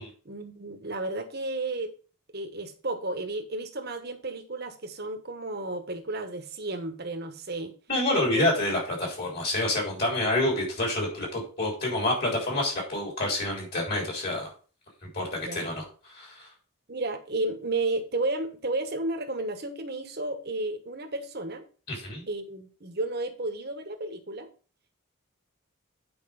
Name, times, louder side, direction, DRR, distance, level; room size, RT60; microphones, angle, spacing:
voice 1, 0.2-1.9 2.3-7.7 8.4-8.5 13.9-14.0 15.4-15.7 16.9-21.7 22.3-24.5, right 2 dB, 45° right, 6 dB, 1.2 m, -32 dB
voice 2, 7.9-14.5 15.1-16.5 21.9-22.2, left 1 dB, 45° left, -1 dB, 3.5 m, -28 dB
9.0 x 4.9 x 4.8 m, 0.38 s
head